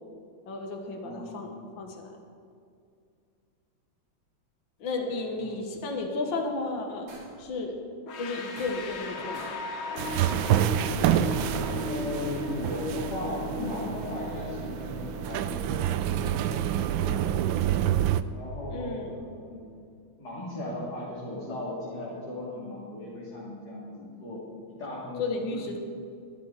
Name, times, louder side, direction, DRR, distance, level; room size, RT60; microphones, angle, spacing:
voice 1, 0.5-2.1 4.8-7.1 7.4-7.8 8.2-9.5 18.7-19.2 25.2-25.8, left 3 dB, 65° left, 2 dB, 2.2 m, -33 dB
voice 2, 1.0-1.6 11.8-17.7 18.3-19.6 20.2-24.4 24.7-25.8, left 1 dB, 50° left, -7 dB, 3.6 m, -37 dB
sound 1, 7.1-7.5 8.6-9.1 9.3-9.7 11.4-11.8, right 2 dB, 50° right, 2.7 m, -49 dB
sound 2, 8.1-18.9, left 3 dB, 85° left, 2.1 m, -37 dB
sound 3, 10.0-18.2, right 11 dB, 80° right, 1.3 m, -28 dB
23.0 x 12.5 x 4.2 m, 2.3 s
omnidirectional pair, 2.2 m